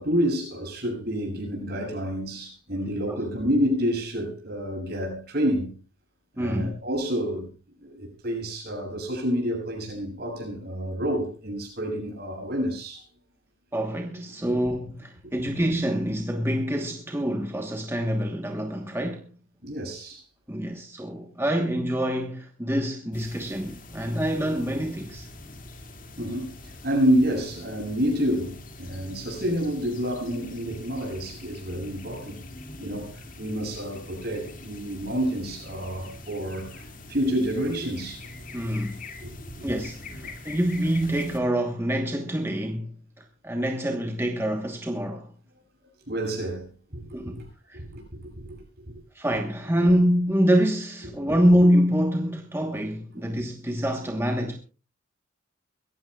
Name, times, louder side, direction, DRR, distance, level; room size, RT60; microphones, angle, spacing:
voice 1, 0.0-5.8 6.4-7.5 7.8-13.0 19.6-20.2 26.2-32.4 32.8-38.3 39.2-39.3 46.1-47.5 47.7-48.8, equal, 50° right, 7.7 m, -28 dB
voice 2, 6.4-6.8 13.7-19.3 20.5-25.3 38.5-39.0 39.6-45.3 47.1-47.4 47.7-47.8 49.1-54.6, equal, 10° right, 1.1 m, -26 dB
sound 1, 23.1-41.4, left 2 dB, 45° left, 2.2 m, -44 dB
23.5 x 15.5 x 2.3 m
head